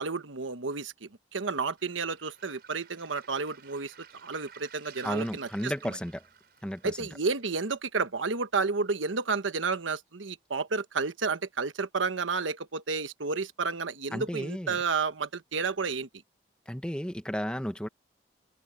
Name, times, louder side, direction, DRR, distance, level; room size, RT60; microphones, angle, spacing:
voice 1, 0.0-3.9 4.2-5.7 6.8-16.1, right 4 dB, 90° right, 1.2 m, -31 dB
Waves surf, 1.8-7.8, right 7 dB, 55° right, 6.1 m, -54 dB
voice 2, 5.0-6.2 6.6-7.1 14.1-14.8 16.7-17.9, equal, 5° left, 1.0 m, -33 dB
head